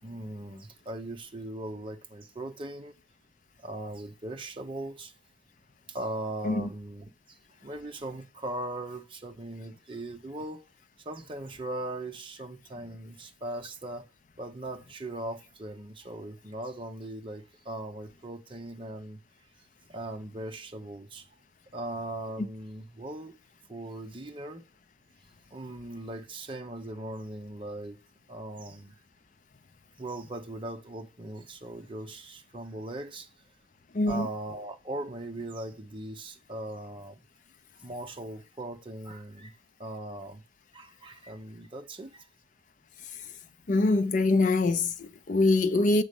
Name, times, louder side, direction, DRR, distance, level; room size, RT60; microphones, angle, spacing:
voice 1, 0.0-3.0 3.6-5.1 5.9-10.6 11.0-14.1 14.4-19.2 19.9-21.3 21.7-23.4 23.7-24.6 25.5-28.0 28.3-29.0 30.0-33.3 34.1-37.2 37.8-40.4 40.7-42.3, right 1 dB, 30° right, 0.9 m, -39 dB
voice 2, 33.9-34.3 43.7-46.0, left 2 dB, 45° left, 0.5 m, -24 dB
7.1 x 4.1 x 5.2 m
head